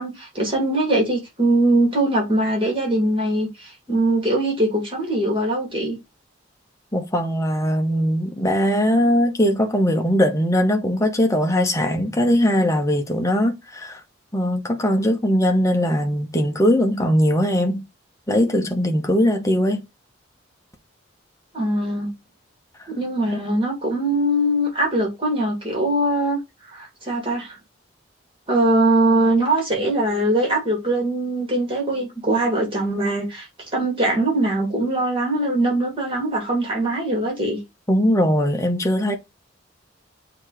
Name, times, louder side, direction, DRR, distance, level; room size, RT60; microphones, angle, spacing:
voice 1, 0.0-6.0 21.5-22.1 22.9-26.4 26.7-27.5 28.5-33.5 33.7-37.6, right 1 dB, 25° right, 2.7 m, -21 dB
voice 2, 6.9-14.0 14.3-17.8 18.3-19.8 23.3-23.4 37.9-39.2, equal, 15° left, 1.0 m, -20 dB
7.1 x 3.0 x 4.9 m
head